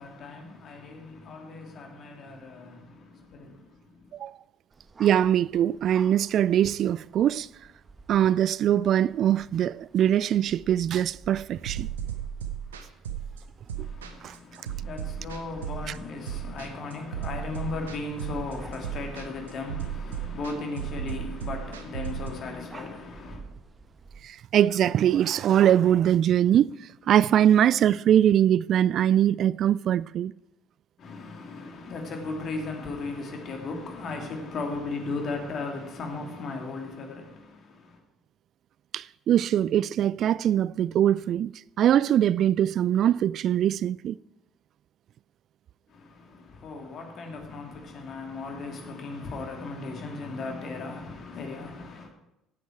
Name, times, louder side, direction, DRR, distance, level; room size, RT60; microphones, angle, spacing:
voice 1, 0.0-4.2 13.8-23.4 31.0-38.0 45.9-52.1, left 3 dB, 50° left, 2.9 m, -37 dB
sound 1, 4.7-24.2, right 4 dB, 30° right, 1.4 m, -51 dB
voice 2, 5.0-7.5 8.1-11.9 13.8-13.9 14.2-14.3 24.2-26.7 27.1-30.3 38.9-41.5 41.8-44.2, right 10 dB, 55° right, 0.3 m, -22 dB
sound 2, 11.7-22.3, right 9 dB, 85° right, 0.9 m, -35 dB
16.5 x 8.3 x 4.7 m
hypercardioid pair, 60°, 0 cm